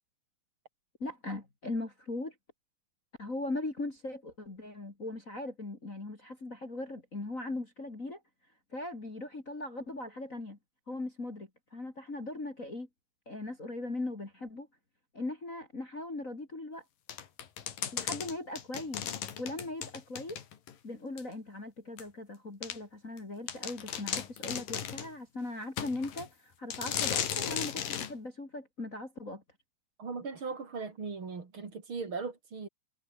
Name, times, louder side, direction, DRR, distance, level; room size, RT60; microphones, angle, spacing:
voice 1, 1.0-2.3 3.2-8.2 8.7-10.6 10.9-12.9 13.3-14.7 15.1-16.8 17.9-19.1 19.4-20.4 20.8-29.4, left 2 dB, 20° left, 3.0 m, -39 dB
sound 1, 17.1-20.7 21.2-21.3 22.0-22.1 22.6-22.8 23.2-23.3 23.5-25.1 25.8-26.3 26.7-28.1, left 9 dB, 65° left, 3.9 m, -36 dB
voice 2, 30.0-32.7, right 4 dB, 35° right, 3.7 m, -38 dB
omnidirectional pair, 4.3 m